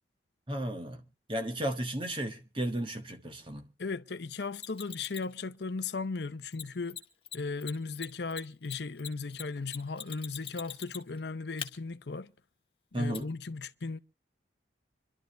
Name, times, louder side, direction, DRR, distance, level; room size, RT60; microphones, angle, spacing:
voice 1, 0.5-3.7 12.9-13.3, right 1 dB, 25° right, 1.5 m, -34 dB
voice 2, 3.8-7.0 7.3-12.3 12.9-14.0, left 4 dB, 60° left, 0.7 m, -36 dB
Mechanisms, 4.6-5.3 6.5-6.6 6.9-7.0 7.2-7.4 7.6-11.2 11.6-11.7 13.1-13.2, left 9 dB, 30° left, 1.3 m, -41 dB
26.0 x 12.0 x 3.3 m
head